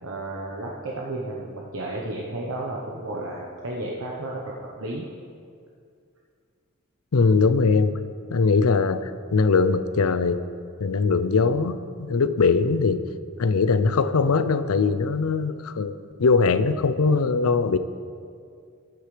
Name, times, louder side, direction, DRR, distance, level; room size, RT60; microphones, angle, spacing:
voice 1, 0.0-5.0, right 2 dB, 80° right, -3 dB, 1.1 m, -33 dB
voice 2, 7.1-7.9 8.3-10.4 10.8-13.0 13.4-15.9 16.2-17.8, left 4 dB, 90° left, 12 dB, 0.5 m, -21 dB
15.0 x 11.0 x 3.4 m, 2.3 s
head